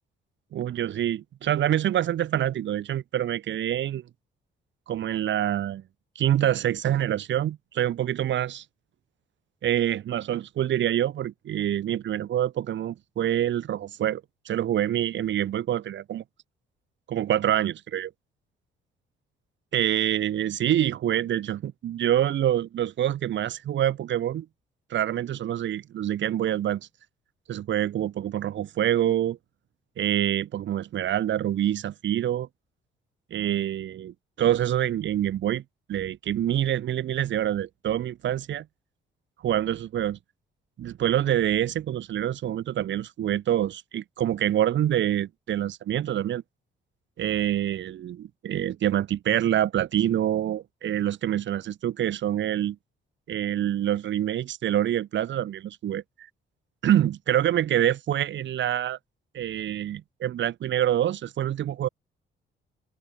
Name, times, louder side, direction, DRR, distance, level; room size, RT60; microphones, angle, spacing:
voice 1, 0.5-4.0 4.9-5.8 6.2-8.6 9.6-16.2 17.1-18.1 19.7-24.5 24.9-26.9 27.5-29.4 30.0-32.5 33.3-35.6 35.9-38.7 39.4-40.2 40.8-46.4 47.2-52.8 53.3-56.0 56.8-59.0 59.3-61.9, right 11 dB, 70° right, 2.0 m, -26 dB
cardioid pair, 90°, 20 cm